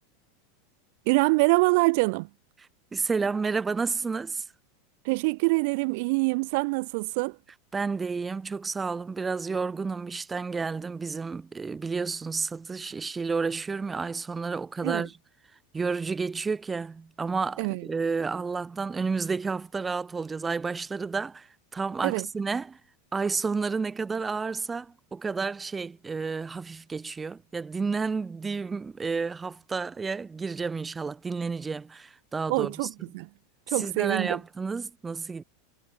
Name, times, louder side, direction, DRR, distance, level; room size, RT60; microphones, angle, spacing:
voice 1, 1.1-2.3 5.0-7.4 14.8-15.1 17.6-17.9 22.0-22.3 32.5-33.3 33.7-34.4, right 28 dB, 55° right, 0.4 m, -25 dB
voice 2, 2.9-4.4 7.7-15.1 15.7-22.8 23.1-32.7 33.8-35.4, right 4 dB, 15° right, 2.1 m, -31 dB
hypercardioid pair, 90°, 0 cm